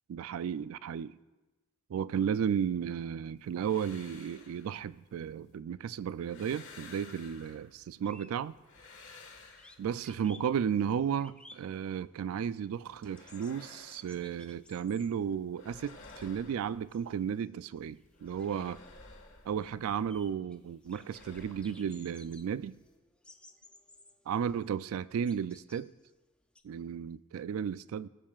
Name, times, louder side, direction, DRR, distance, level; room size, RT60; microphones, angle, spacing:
voice 1, 0.1-1.2 1.9-8.5 9.8-18.8 19.5-22.8 24.3-25.9 26.6-28.1, right 8 dB, 70° right, 0.3 m, -34 dB
sound 1, 3.4-5.6 6.0-8.0 8.4-10.3 12.7-14.9 15.2-17.4 17.8-20.3 20.6-23.0, left 3 dB, 60° left, 1.6 m, -55 dB
sound 2, 7.8-9.3 9.5-12.3 12.5-16.4 16.7-26.6, left 2 dB, 5° left, 0.4 m, -58 dB
19.0 x 7.4 x 2.4 m
head